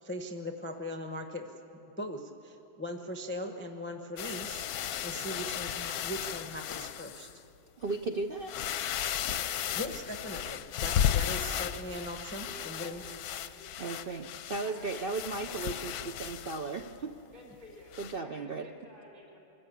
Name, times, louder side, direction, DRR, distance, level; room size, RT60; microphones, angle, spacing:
voice 1, 0.0-1.5 2.0-4.7 5.0-7.3 9.4-13.0, equal, 10° left, 4 dB, 0.7 m, -40 dB
sound 1, 4.2-7.4 7.9-8.0 8.4-17.0 17.9-18.2, left 10 dB, 70° left, 1.0 m, -35 dB
voice 2, 7.8-8.5 13.8-17.1 18.0-18.7, right 3 dB, 65° right, 6 dB, 0.5 m, -36 dB
voice 3, 12.4-13.1 13.4-14.0 14.6-15.0 15.5-16.1 17.3-19.4, left 1 dB, 25° right, -4 dB, 5.4 m, -53 dB
25.0 x 14.0 x 8.5 m, 2.8 s
omnidirectional pair, 1.9 m